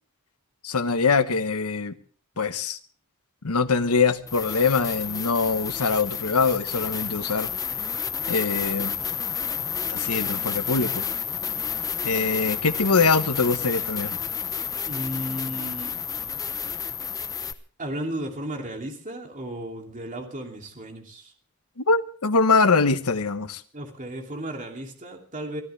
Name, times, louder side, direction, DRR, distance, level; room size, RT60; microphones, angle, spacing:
voice 1, 0.6-1.9 2.4-2.8 3.4-7.5 8.3-8.9 9.9-11.0 12.0-14.2 21.8-23.6, left 4 dB, 85° left, 1.2 m, -23 dB
sound 1, 4.2-17.5, left 7 dB, 15° left, 0.9 m, -30 dB
voice 2, 14.9-16.0 17.8-21.3 23.7-25.6, right 1 dB, 35° right, 2.8 m, -34 dB
24.0 x 14.5 x 3.4 m
head